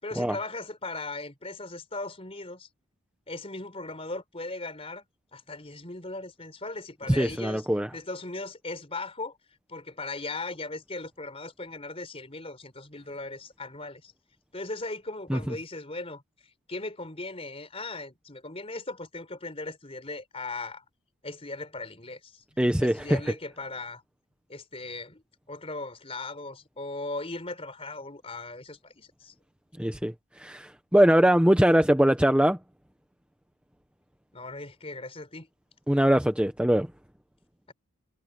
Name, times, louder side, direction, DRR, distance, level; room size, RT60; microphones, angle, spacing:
voice 1, 0.0-2.7 3.3-5.0 5.3-7.7 7.9-9.4 9.7-14.1 14.5-16.2 16.7-20.8 21.2-22.4 22.8-24.0 24.5-29.3 34.3-35.5 37.7-37.8, left 2 dB, 25° left, 4.2 m, -38 dB
voice 2, 7.1-7.9 15.3-15.4 22.6-23.2 29.8-30.1 30.4-32.6 35.9-36.9, equal, 5° right, 0.8 m, -22 dB
head